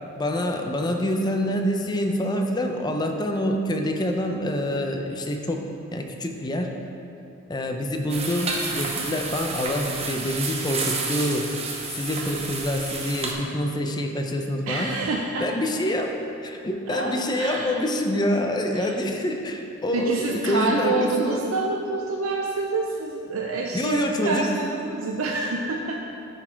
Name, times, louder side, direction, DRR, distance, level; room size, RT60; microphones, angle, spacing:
voice 1, 0.2-6.7 7.5-11.5 11.9-14.9 15.4-16.1 16.4-21.4 23.7-24.6, left 1 dB, 20° left, 3 dB, 0.5 m, -26 dB
sound 1, 8.1-13.3, right 4 dB, 30° right, 0.7 m, -30 dB
voice 2, 14.7-15.5 16.9-17.8 18.8-18.9 19.9-26.0, right 3 dB, 80° right, 0 dB, 0.5 m, -27 dB
10.0 x 4.2 x 4.4 m, 2.7 s
head